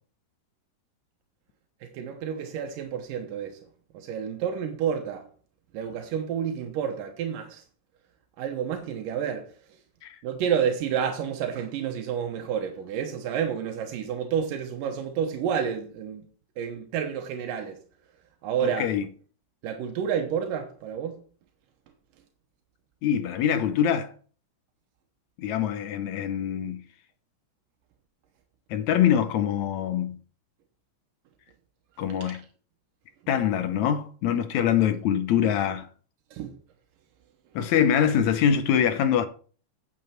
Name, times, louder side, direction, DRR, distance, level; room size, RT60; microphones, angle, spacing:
voice 1, 1.8-3.6 3.9-5.3 5.7-7.6 8.4-9.5 10.2-16.3 16.6-17.8 18.4-18.9 19.6-21.2 32.2-32.4 36.3-36.6, right 8 dB, 85° right, 2.7 m, -30 dB
voice 2, 18.6-19.0 23.0-24.1 25.4-26.8 28.7-30.2 32.0-32.4 33.3-35.9 37.6-39.3, left 9 dB, 70° left, 1.9 m, -24 dB
9.1 x 8.6 x 4.4 m
omnidirectional pair, 3.8 m